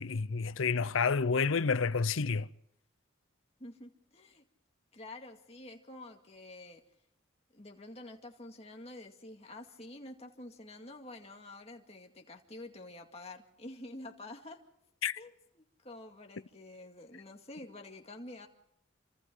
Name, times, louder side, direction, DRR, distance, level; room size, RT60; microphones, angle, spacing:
voice 1, 0.0-2.5 15.0-15.2, left 5 dB, 85° left, 0.7 m, -29 dB
voice 2, 3.6-4.4 4.9-6.8 7.5-14.6 15.2-18.5, left 2 dB, 30° left, 2.2 m, -48 dB
28.0 x 26.0 x 3.9 m
head